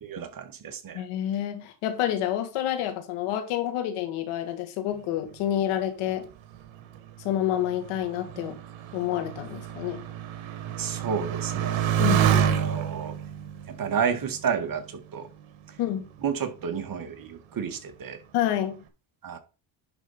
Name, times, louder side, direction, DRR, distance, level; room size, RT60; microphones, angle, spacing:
voice 1, 0.0-1.0 10.8-11.9 12.2-13.2 13.7-15.3 16.2-18.2 19.2-19.4, right 7 dB, 40° right, 1.5 m, -31 dB
voice 2, 0.9-6.3 7.2-8.6 8.9-10.0 12.0-12.6 15.8-16.1 18.3-18.8, left 11 dB, 90° left, 2.1 m, -28 dB
Motorcycle, 6.3-15.3 16.0-16.6, right 9 dB, 70° right, 1.7 m, -29 dB
10.5 x 3.9 x 5.4 m
cardioid pair, 120°, 49 cm